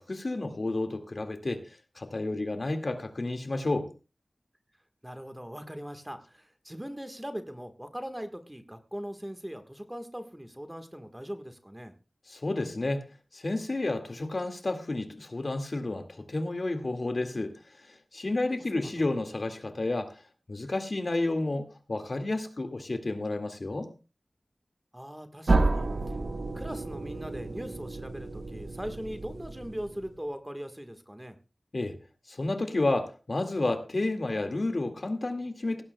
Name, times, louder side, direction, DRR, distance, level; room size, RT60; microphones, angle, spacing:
voice 1, 0.0-1.6 2.0-3.9 12.3-13.1 13.3-17.5 18.1-20.2 20.5-23.9 31.7-32.0 32.3-35.8, left 2 dB, 60° left, 6 dB, 2.0 m, -31 dB
voice 2, 5.0-11.9 18.7-19.1 24.9-26.2 26.5-31.4, equal, 10° right, 7 dB, 1.5 m, -40 dB
sound 1, 25.5-30.2, right 3 dB, 75° right, 1.4 m, -30 dB
17.5 x 15.5 x 2.3 m, 0.32 s
wide cardioid pair, 70°, 0 cm